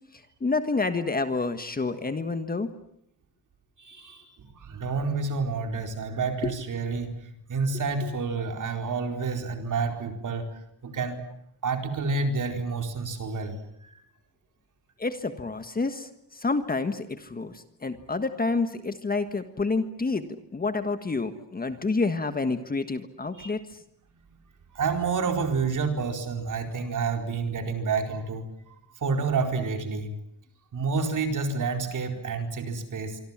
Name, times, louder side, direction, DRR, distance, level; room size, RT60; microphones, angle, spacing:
voice 1, 0.1-2.7 6.4-6.5 15.0-20.3 20.5-23.8, left 3 dB, 20° left, 9 dB, 1.5 m, -29 dB
voice 2, 3.8-10.5 10.8-11.2 11.6-13.6 13.8-14.0 23.4-23.5 24.7-28.8 29.0-30.1 30.7-33.2, right 4 dB, 50° right, 5 dB, 4.5 m, -29 dB
26.0 x 25.0 x 7.5 m, 0.74 s
wide cardioid pair, 170°, 39 cm